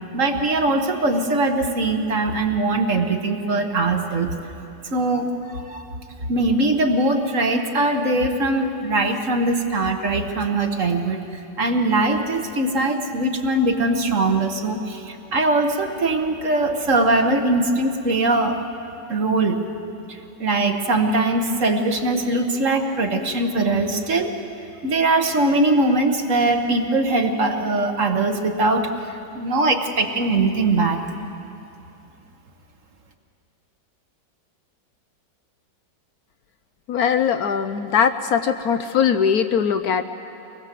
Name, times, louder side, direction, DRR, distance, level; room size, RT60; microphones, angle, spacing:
voice 1, 0.1-4.3 4.9-5.8 6.3-11.2 11.6-18.6 19.1-19.6 20.1-24.3 24.8-31.0, right 2 dB, 50° right, 5 dB, 1.5 m, -21 dB
voice 2, 36.9-40.0, left 7 dB, 65° left, 9 dB, 1.1 m, -20 dB
24.5 x 19.5 x 7.5 m, 2.7 s
omnidirectional pair, 1.9 m